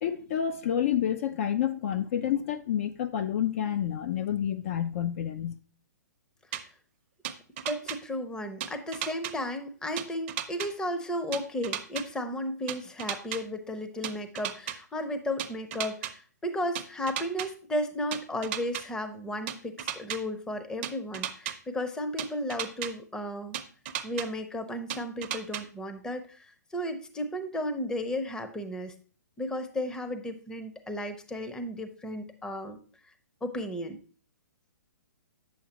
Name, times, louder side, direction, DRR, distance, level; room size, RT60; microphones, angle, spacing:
voice 1, 0.0-5.6, left 9 dB, 45° left, 0.5 m, -29 dB
sound 1, 6.5-6.6 7.2-8.0 8.6-9.3 10.0-10.7 11.3-12.0 12.7-13.4 14.0-14.8 15.4-16.1 16.8-17.5 18.1-18.8 19.5-20.2 20.8-21.5 22.2-22.9 23.5-24.3 24.9-25.6, right 10 dB, 40° right, 0.7 m, -34 dB
voice 2, 7.6-23.6 24.0-26.5 26.7-28.9 29.4-32.8 33.4-34.0, left 1 dB, 5° left, 0.7 m, -34 dB
8.4 x 7.1 x 2.9 m
figure-of-eight pair, 125°, 10 cm